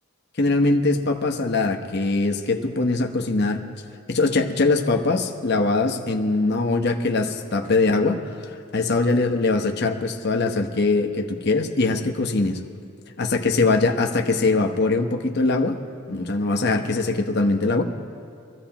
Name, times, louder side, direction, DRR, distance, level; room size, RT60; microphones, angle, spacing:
voice 1, 0.4-3.6 4.1-12.6 13.2-15.8 16.1-17.8, left 3 dB, 50° left, 3 dB, 1.0 m, -22 dB
24.5 x 15.5 x 3.0 m, 2.6 s
head